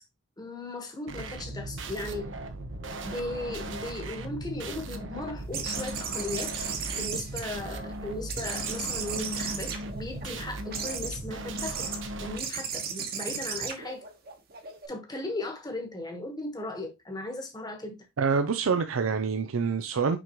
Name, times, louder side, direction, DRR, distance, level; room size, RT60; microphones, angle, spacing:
voice 1, 0.4-2.3 3.0-11.8 12.2-14.0 14.9-18.1, left 2 dB, 20° left, 1.3 m, -37 dB
sound 1, 1.1-12.4, right 1 dB, 60° right, 0.9 m, -38 dB
sound 2, 5.5-7.9 8.3-10.2 10.7-11.2 11.5-12.0 12.4-14.9, right 6 dB, 45° right, 1.2 m, -35 dB
voice 2, 18.2-20.2, right 5 dB, 80° right, 0.5 m, -26 dB
5.9 x 5.2 x 3.0 m
head